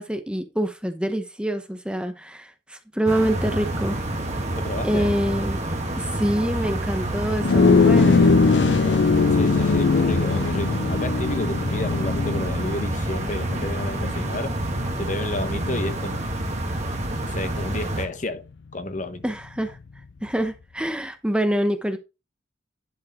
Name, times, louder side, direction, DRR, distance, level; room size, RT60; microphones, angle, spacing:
voice 1, 0.0-4.0 4.8-5.6 6.0-8.3 19.2-19.8 20.2-22.0, right 1 dB, 5° right, 0.9 m, -26 dB
sound 1, 3.1-18.1, right 1 dB, 40° right, 1.9 m, -28 dB
voice 2, 4.5-5.1 9.3-14.5 15.0-16.3 17.2-18.4 18.7-19.2, left 1 dB, 40° left, 1.1 m, -31 dB
sound 2, 7.4-17.0, left 4 dB, 65° left, 0.4 m, -22 dB
10.5 x 4.8 x 4.2 m
head